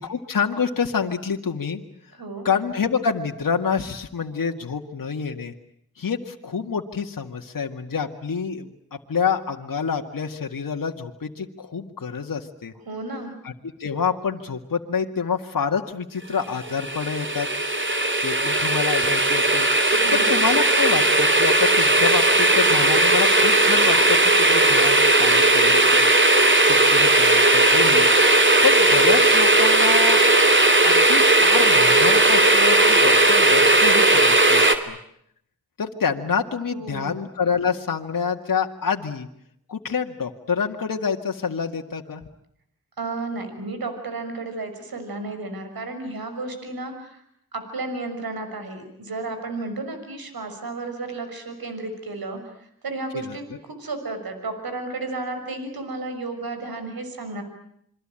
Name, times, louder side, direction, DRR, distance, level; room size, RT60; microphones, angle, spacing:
voice 1, 0.0-1.8 2.4-5.5 6.0-8.7 9.1-12.7 13.4-13.5 13.8-17.5 18.2-26.1 26.7-28.1 28.4-30.2 30.8-35.0 35.8-39.3 39.7-42.2 53.1-53.4, left 6 dB, 65° left, 3 dB, 2.1 m, -27 dB
voice 2, 2.1-2.5 12.9-13.3 19.9-20.4 36.7-37.2 43.0-47.2 47.5-57.4, right 3 dB, 75° right, 7 dB, 6.2 m, -33 dB
sound 1, 16.7-34.7, right 2 dB, 30° right, 3.1 m, -17 dB
27.5 x 23.5 x 8.9 m, 0.72 s
cardioid pair, 55°, 36 cm